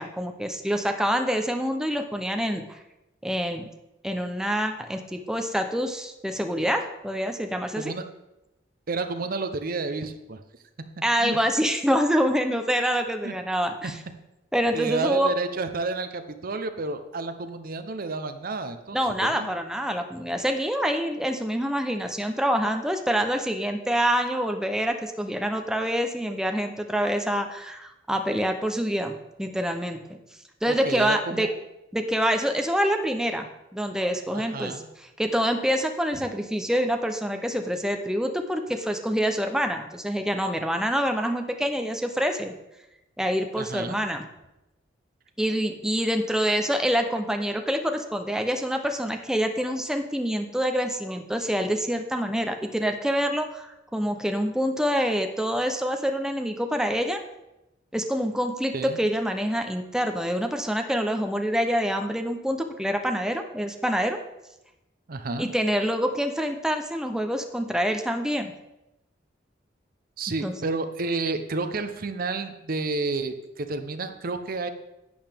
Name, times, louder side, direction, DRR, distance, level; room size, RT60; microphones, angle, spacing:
voice 1, 0.0-2.8 3.2-3.6 4.0-7.9 11.0-14.0 14.5-15.3 18.9-29.1 29.4-30.0 30.6-31.5 31.9-34.8 35.2-42.5 43.2-44.2 45.4-57.2 57.9-64.2 65.4-68.5 70.4-70.5, equal, 5° right, 5 dB, 0.6 m, -26 dB
voice 2, 8.9-10.4 11.2-11.4 13.2-13.3 13.8-13.9 14.7-19.5 30.7-31.5 34.3-34.9 43.6-44.0 58.7-59.0 65.1-65.5 70.2-74.7, right 3 dB, 50° right, 9 dB, 0.7 m, -30 dB
11.5 x 8.6 x 3.5 m, 0.93 s
head